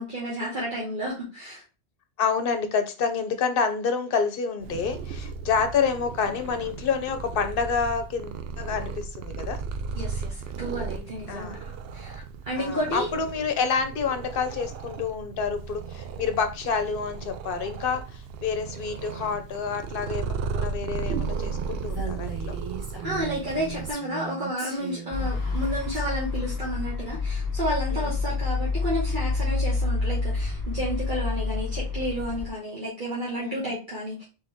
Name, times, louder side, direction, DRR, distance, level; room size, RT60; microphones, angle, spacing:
voice 1, 0.0-1.6 9.9-11.6 11.9-13.1 23.0-34.2, equal, 50° right, -7 dB, 1.7 m, -31 dB
voice 2, 2.2-9.6 11.3-11.6 12.6-22.6 27.9-28.1 33.4-33.7, left 5 dB, 60° left, 8 dB, 0.9 m, -28 dB
Purr, 4.6-23.9, right 5 dB, 70° right, 0.8 m, -35 dB
Female speech woman speaking, 21.9-26.0, right 5 dB, 20° right, 1.5 m, -38 dB
sound 1, 25.1-32.5, left 3 dB, 20° left, 0.7 m, -28 dB
4.1 x 3.5 x 3.5 m, 0.32 s
omnidirectional pair, 1.1 m